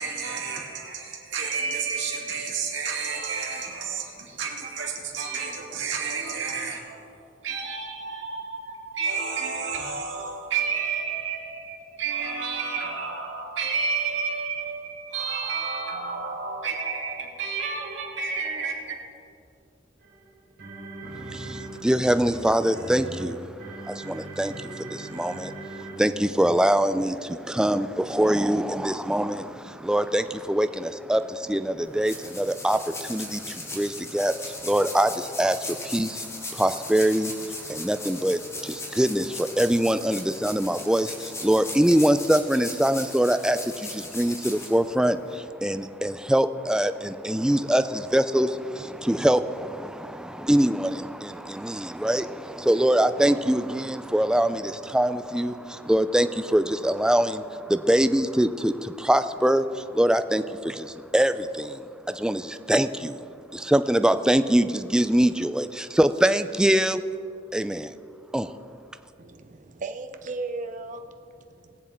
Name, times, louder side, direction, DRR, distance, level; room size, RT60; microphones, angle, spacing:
voice 1, 0.0-7.1 7.4-18.7, right 5 dB, 90° right, 2.2 m, -30 dB
sound 1, 20.0-26.4, right 2 dB, 70° right, 3.5 m, -39 dB
voice 2, 21.3-23.4 23.8-36.3 36.5-63.2 63.5-67.0 67.5-67.9 68.3-68.5, right 1 dB, 5° right, 0.3 m, -24 dB
sound 2, 31.8-45.4, left 2 dB, 15° left, 1.4 m, -38 dB
voice 3, 69.2-71.8, right 3 dB, 45° right, 0.6 m, -36 dB
20.5 x 7.4 x 4.4 m
head